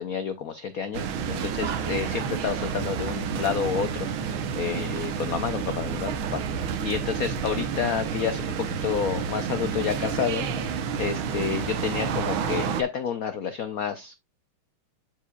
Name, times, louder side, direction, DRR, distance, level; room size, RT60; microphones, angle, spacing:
voice 1, 0.0-10.5 11.0-14.2, left 7 dB, 75° left, 0.8 m, -30 dB
sound 1, 0.9-12.8, right 7 dB, 70° right, 1.7 m, -30 dB
11.5 x 4.7 x 2.3 m
omnidirectional pair, 2.4 m